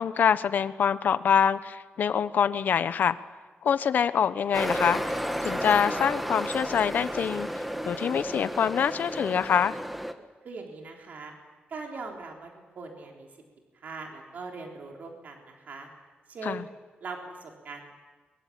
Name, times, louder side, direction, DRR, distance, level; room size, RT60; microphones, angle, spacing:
voice 1, 0.0-3.2 3.6-9.8 16.4-16.6, left 7 dB, 60° left, 14 dB, 0.9 m, -25 dB
sound 1, 4.5-10.1, equal, 5° right, 1.3 m, -32 dB
voice 2, 10.4-11.3 11.7-12.5 12.8-13.3 13.7-15.9 16.3-16.7 17.0-17.9, right 4 dB, 55° right, 1 dB, 3.8 m, -40 dB
23.5 x 23.0 x 8.7 m, 1.3 s
wide cardioid pair, 170°, 3 cm